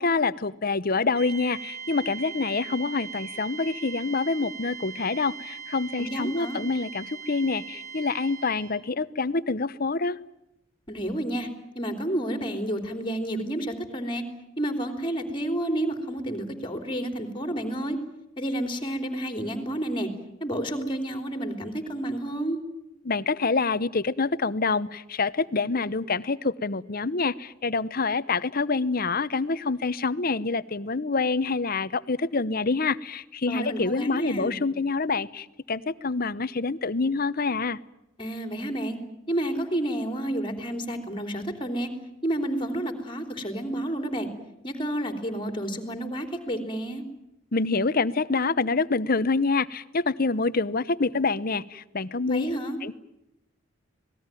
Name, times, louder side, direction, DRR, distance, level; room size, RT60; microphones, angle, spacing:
voice 1, 0.0-10.2 23.0-37.8 47.5-52.5 52.8-52.9, left 4 dB, 45° left, 16 dB, 0.9 m, -26 dB
sound 1, 1.1-8.9, right 6 dB, 50° right, 4.5 m, -40 dB
voice 2, 6.0-6.6 10.9-11.5 11.8-14.2 14.6-18.0 18.4-20.1 20.4-22.6 33.5-34.5 38.2-39.0 39.3-41.9 42.2-44.3 44.6-47.0 52.3-52.8, right 1 dB, 25° left, 8 dB, 3.5 m, -30 dB
26.5 x 19.5 x 9.1 m, 0.87 s
head